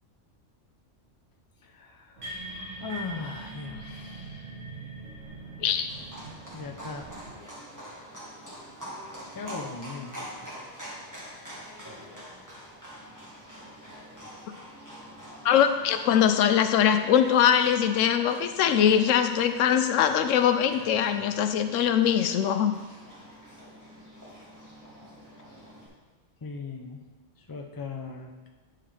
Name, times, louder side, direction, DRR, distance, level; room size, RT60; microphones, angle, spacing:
voice 1, 1.6-2.3 2.8-4.6 6.5-7.0 9.3-10.5 26.4-27.0 27.4-28.5, left 4 dB, 25° left, 2 dB, 0.5 m, -39 dB
sound 1, 2.2-7.4, right 2 dB, 85° right, 1.9 m, -42 dB
Livestock farm animals working animals, 5.9-25.9, equal, 15° right, 1.7 m, -45 dB
voice 2, 15.4-22.8, left 9 dB, 90° left, 9 dB, 0.9 m, -22 dB
8.8 x 5.7 x 3.3 m, 1.3 s
omnidirectional pair, 1.3 m